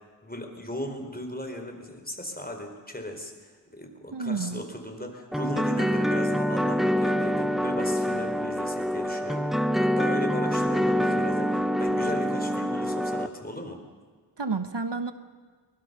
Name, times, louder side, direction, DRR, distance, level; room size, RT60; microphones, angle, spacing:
voice 1, 0.2-13.8, left 1 dB, 20° left, 4 dB, 4.2 m, -37 dB
voice 2, 4.1-4.6 14.4-15.1, right 4 dB, 70° right, 10 dB, 1.2 m, -30 dB
sound 1, 5.3-13.3, equal, ahead, 0.9 m, -26 dB
23.5 x 21.0 x 6.8 m, 1.5 s
wide cardioid pair, 45°, 43 cm